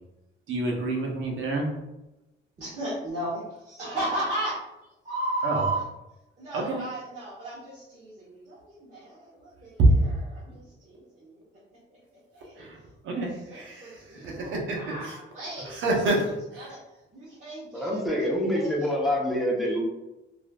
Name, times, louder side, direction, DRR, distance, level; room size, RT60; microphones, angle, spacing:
voice 1, 0.5-1.7 5.4-5.6 6.5-6.9 9.8-10.0 12.6-12.8 13.0-15.2 15.6-16.7, right 2 dB, 80° right, 0 dB, 0.8 m, -26 dB
voice 2, 2.6-4.6 5.0-5.8 6.4-9.8 10.3-11.4 11.9-12.7 13.1-13.2 13.5-16.0 16.5-16.8 17.1-18.9, right 1 dB, 35° right, -10 dB, 1.2 m, -35 dB
voice 3, 17.7-19.8, equal, ahead, -3 dB, 0.8 m, -26 dB
3.0 x 2.5 x 2.3 m, 0.96 s
cardioid pair, 90°, 20 cm